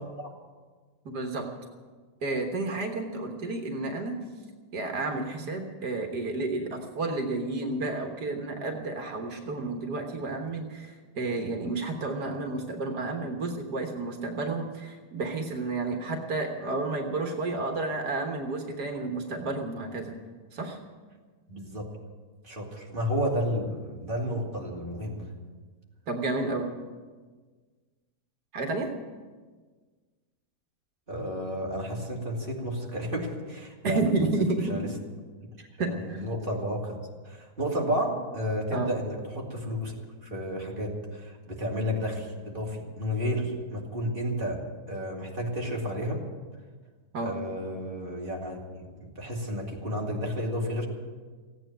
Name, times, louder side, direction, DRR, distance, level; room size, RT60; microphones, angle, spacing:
voice 1, 1.1-1.5 2.2-4.2 4.7-20.2 20.5-20.8 26.1-26.7 28.5-28.9 33.8-34.8 35.6-36.2 38.7-38.9 47.1-47.4, right 3 dB, 80° right, 3 dB, 1.9 m, -31 dB
voice 2, 21.5-21.9 22.4-25.3 31.1-34.0 34.7-34.9 35.8-37.0 37.2-39.9 40.2-44.6 44.9-46.2 47.2-50.9, equal, 35° right, -2 dB, 2.7 m, -32 dB
16.0 x 9.1 x 9.1 m, 1.4 s
omnidirectional pair, 1.7 m